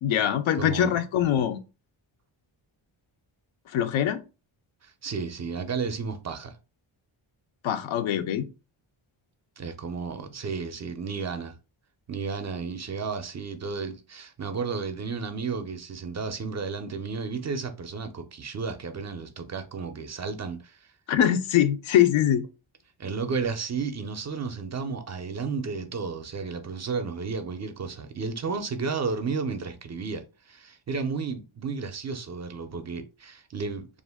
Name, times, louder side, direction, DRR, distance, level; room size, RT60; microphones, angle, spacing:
voice 1, 0.0-1.6 3.7-4.2 7.6-8.5 21.1-22.5, left 10 dB, 70° left, 0.5 m, -23 dB
voice 2, 0.6-1.0 4.8-6.5 9.6-11.5 12.1-20.9 23.0-33.9, right 5 dB, 35° right, 0.4 m, -33 dB
2.5 x 2.1 x 3.4 m
cardioid pair, 75°, 48 cm